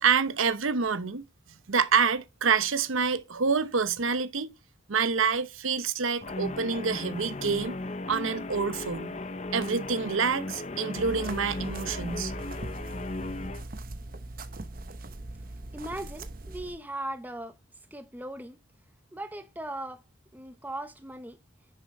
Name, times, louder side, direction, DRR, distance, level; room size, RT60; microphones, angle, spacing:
voice 1, 0.0-1.2 1.7-4.5 4.9-7.8 8.1-9.2 9.5-12.3, right 5 dB, 80° right, 0.9 m, -27 dB
Guitar, 6.2-13.6, left 2 dB, 35° left, 0.7 m, -37 dB
sound 1, 10.9-16.8, right 2 dB, 45° right, 0.8 m, -40 dB
voice 2, 15.7-17.6 17.9-18.6 19.1-20.0 20.3-21.4, right 1 dB, 10° right, 0.8 m, -38 dB
10.0 x 6.9 x 3.1 m
head